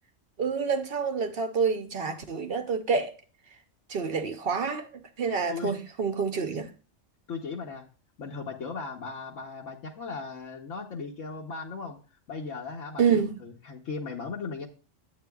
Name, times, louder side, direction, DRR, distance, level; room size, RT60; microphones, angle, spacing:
voice 1, 0.4-3.1 3.9-6.7 13.0-13.3, right 5 dB, 55° right, 0.8 m, -28 dB
voice 2, 7.3-7.8 8.2-12.0 12.3-14.7, left 4 dB, 70° left, 1.3 m, -37 dB
9.6 x 8.7 x 2.3 m
omnidirectional pair, 1.4 m